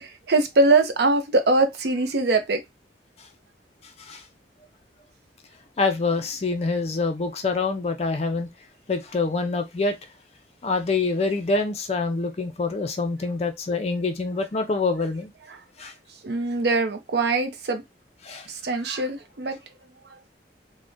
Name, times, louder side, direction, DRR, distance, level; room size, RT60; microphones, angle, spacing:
voice 1, 0.0-2.6 15.5-15.6 16.2-17.8 18.5-19.6 20.1-20.2, right 3 dB, 60° right, 0.6 m, -22 dB
voice 2, 5.8-8.5 8.9-9.9 10.6-15.3 15.8-15.9 18.2-18.5, left 3 dB, 35° left, 0.4 m, -26 dB
3.5 x 2.1 x 2.5 m
head